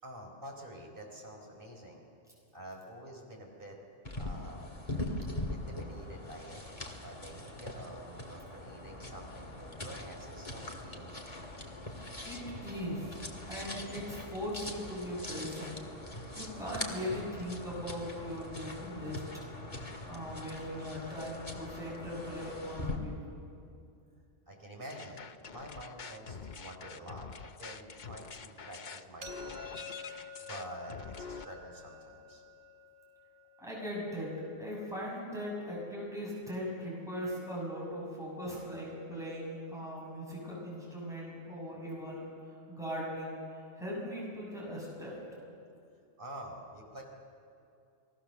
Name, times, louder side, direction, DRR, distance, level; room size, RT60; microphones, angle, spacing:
voice 1, 0.0-2.0 2.5-3.8 4.2-4.8 5.5-6.6 7.0-11.1 24.5-32.4 46.2-47.0, right 1 dB, 45° right, 0 dB, 4.6 m, -48 dB
sound 1, 4.0-23.0, left 1 dB, 30° left, 2.2 m, -42 dB
voice 2, 12.2-13.2 13.5-19.2 20.1-23.2 33.6-34.3 34.6-43.4 43.8-45.2, equal, ahead, -5 dB, 7.4 m, -39 dB
sound 2, 24.9-31.4, left 5 dB, 45° left, 0.8 m, -46 dB
sound 3, 29.2-35.0, left 4 dB, 80° right, 2.2 m, -50 dB
29.5 x 20.0 x 6.8 m, 2.5 s
omnidirectional pair, 1.3 m